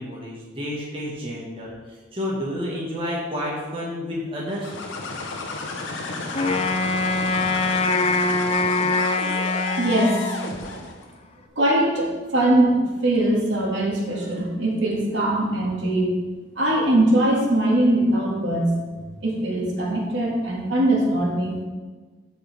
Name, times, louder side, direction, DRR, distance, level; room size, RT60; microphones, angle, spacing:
voice 1, 0.0-1.7 2.1-4.7, left 1 dB, 30° right, -5 dB, 1.8 m, -30 dB
sound 1, 4.5-11.0, left 3 dB, 80° left, 1.2 m, -32 dB
Wind instrument woodwind instrument, 6.3-10.7, left 3 dB, 30° left, 0.6 m, -23 dB
voice 2, 9.8-10.2 11.6-16.2 16.6-18.7 19.2-21.7, right 1 dB, 70° right, -3 dB, 2.3 m, -21 dB
13.5 x 5.5 x 3.6 m, 1.3 s
head